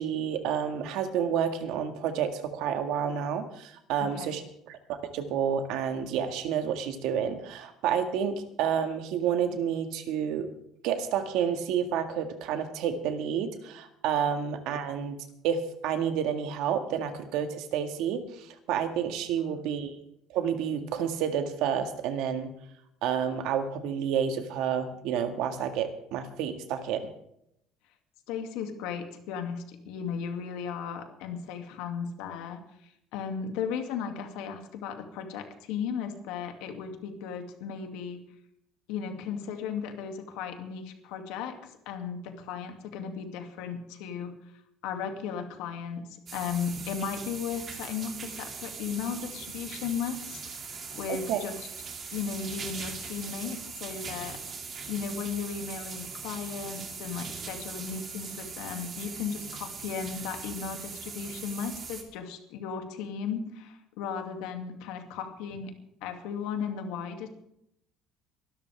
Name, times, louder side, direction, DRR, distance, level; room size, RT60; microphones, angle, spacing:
voice 1, 0.0-4.4 4.7-10.5 10.8-15.2 15.4-20.0 20.3-22.5 23.0-27.1 51.1-51.4, right 8 dB, 65° right, 7 dB, 1.8 m, -30 dB
voice 2, 28.3-32.6 33.1-38.2 38.9-41.5 41.9-44.3 44.8-46.0 46.3-51.7 52.1-54.4 54.9-65.7 66.0-67.3, left 6 dB, 85° left, 4 dB, 2.5 m, -35 dB
sound 1, 46.3-62.0, right 5 dB, 25° right, 2.3 m, -40 dB
23.0 x 13.0 x 3.5 m, 0.76 s
cardioid pair, 175°, 0 cm